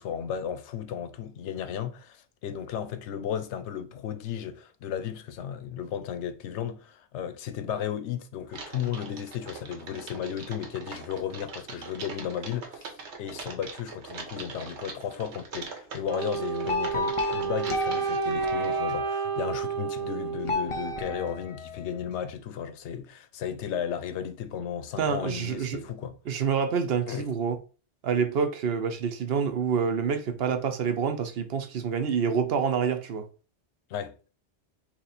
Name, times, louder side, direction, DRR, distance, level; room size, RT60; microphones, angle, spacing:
voice 1, 0.0-26.1 27.1-27.3 33.9-34.1, left 8 dB, 85° left, 0.9 m, -34 dB
Typing, 8.5-19.0, right 4 dB, 85° right, 1.1 m, -42 dB
Wind instrument woodwind instrument, 16.1-21.1, right 6 dB, 35° right, 0.4 m, -31 dB
sound 1, 16.7-19.4 20.4-22.2, left 3 dB, 45° left, 0.4 m, -33 dB
voice 2, 25.0-25.8 26.3-27.6 28.0-33.2, right 6 dB, 65° right, 0.8 m, -27 dB
3.0 x 2.9 x 4.1 m
omnidirectional pair, 1.1 m